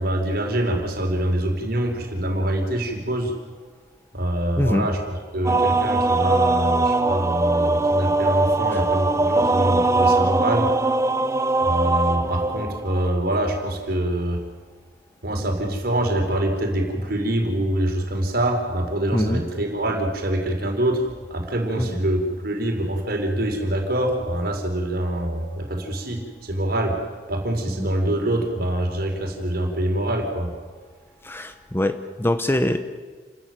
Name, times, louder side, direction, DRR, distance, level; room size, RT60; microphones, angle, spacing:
voice 1, 0.0-3.3 4.1-5.0 5.3-10.7 11.6-14.4 15.2-21.0 21.3-27.0 27.3-30.5, right 1 dB, 55° right, 3 dB, 4.5 m, -25 dB
voice 2, 4.6-4.9 19.1-19.4 21.8-21.9 27.8-27.9 31.2-32.8, left 1 dB, 10° left, 9 dB, 0.9 m, -23 dB
sound 1, 5.4-13.1, right 2 dB, 15° right, 0.8 m, -21 dB
29.5 x 14.0 x 9.4 m, 1.5 s
head